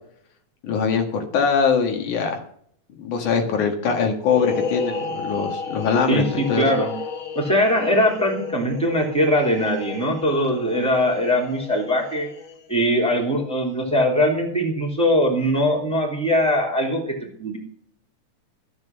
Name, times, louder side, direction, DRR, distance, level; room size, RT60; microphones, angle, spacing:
voice 1, 0.6-2.4 3.0-6.6, left 6 dB, 85° left, 3 dB, 3.3 m, -22 dB
sound 1, 4.3-12.8, left 4 dB, 50° left, 1.0 m, -33 dB
voice 2, 6.1-6.9 7.3-12.3 12.7-17.6, equal, ahead, 0 dB, 3.1 m, -21 dB
14.5 x 7.6 x 6.2 m, 0.64 s
omnidirectional pair, 3.4 m